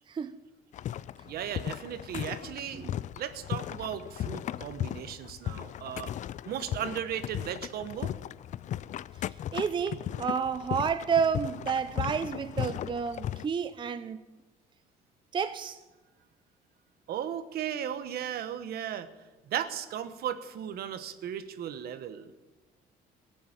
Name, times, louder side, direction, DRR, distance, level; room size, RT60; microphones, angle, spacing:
voice 1, 0.1-0.4 2.7-2.9 9.5-14.2 15.3-15.8, right 6 dB, 30° right, 0.6 m, -30 dB
sound 1, 0.7-13.5, left 11 dB, 45° left, 0.4 m, -37 dB
voice 2, 1.2-2.8 3.2-6.1 6.4-8.1 17.1-19.1 19.5-22.3, right 9 dB, 65° right, 1.2 m, -36 dB
17.0 x 7.1 x 9.0 m
cardioid pair, 110°, 17 cm